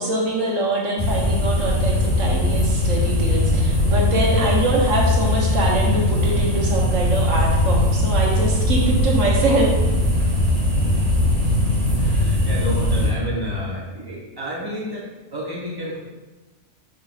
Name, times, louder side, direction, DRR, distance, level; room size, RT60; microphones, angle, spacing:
voice 1, 0.0-9.7, right 1 dB, 85° right, -2 dB, 1.5 m, -23 dB
sound 1, 1.0-13.1, left 1 dB, 60° right, 2.5 m, -20 dB
voice 2, 11.9-16.0, equal, 20° right, -5 dB, 1.4 m, -30 dB
5.2 x 4.9 x 4.1 m, 1.2 s
omnidirectional pair, 1.3 m